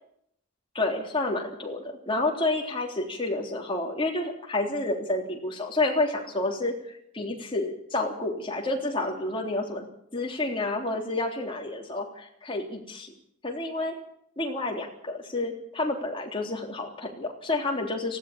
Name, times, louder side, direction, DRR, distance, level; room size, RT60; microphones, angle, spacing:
voice 1, 0.8-9.9 10.1-13.1 13.4-13.9 14.4-18.2, left 2 dB, 25° left, 1 dB, 3.5 m, -29 dB
19.0 x 16.5 x 8.8 m, 0.73 s
head